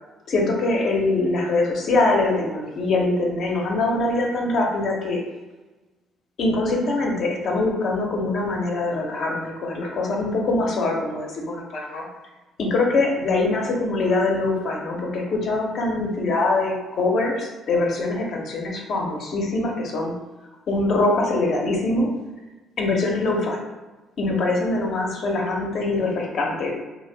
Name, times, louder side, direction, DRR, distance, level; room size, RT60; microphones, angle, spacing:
voice 1, 0.3-5.2 6.4-12.0 12.6-20.1 20.7-22.1 22.8-23.6 24.2-26.7, left 2 dB, 60° left, 0 dB, 0.7 m, -23 dB
2.6 x 2.1 x 3.3 m, 1.2 s
supercardioid pair, 70°, 0 cm